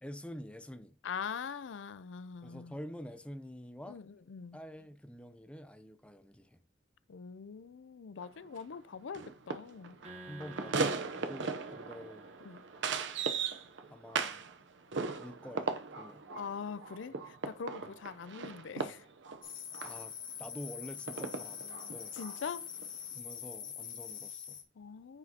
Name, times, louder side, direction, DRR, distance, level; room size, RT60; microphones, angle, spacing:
voice 1, 0.0-0.9 2.4-4.0 4.5-6.6 10.3-12.3 13.9-14.4 15.2-16.2 17.8-18.0 19.8-22.2 23.1-24.6, equal, 5° left, 0.5 m, -47 dB
voice 2, 1.0-2.8 3.9-4.6 7.1-10.0 12.4-12.6 16.4-19.0 22.2-22.7 24.8-25.2, left 6 dB, 85° left, 0.4 m, -43 dB
sound 1, 8.2-8.3 8.5-8.7 9.1-14.6 14.9-20.0 21.1-22.4 22.8-22.9, right 4 dB, 80° right, 0.8 m, -38 dB
sound 2, 10.0-13.5, right 2 dB, 35° right, 1.1 m, -53 dB
sound 3, 19.4-24.6, left 8 dB, 45° left, 1.4 m, -44 dB
9.5 x 4.9 x 2.8 m
head